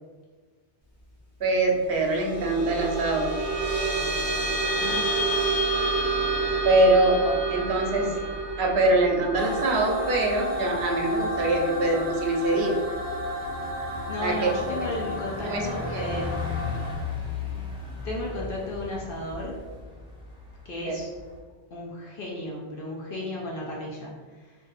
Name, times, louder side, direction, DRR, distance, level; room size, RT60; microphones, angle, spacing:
voice 1, 1.4-3.3 6.6-7.2 7.5-8.1 8.6-12.8 14.2-14.9 15.4-16.1, right 2 dB, 65° right, 1 dB, 0.8 m, -23 dB
sound 1, 1.9-12.6, right 3 dB, 30° left, 1.2 m, -29 dB
Bus, 4.5-21.4, left 4 dB, 5° right, 0.5 m, -39 dB
voice 2, 4.7-5.1 6.5-6.6 7.2-7.3 7.9-8.3 14.1-16.3 18.0-19.6 20.6-21.1 21.7-24.6, left 1 dB, 60° left, -3 dB, 0.8 m, -34 dB
sound 2, 9.3-16.9, left 1 dB, 40° right, 0.9 m, -33 dB
2.6 x 2.5 x 3.9 m, 1.4 s
omnidirectional pair, 1.1 m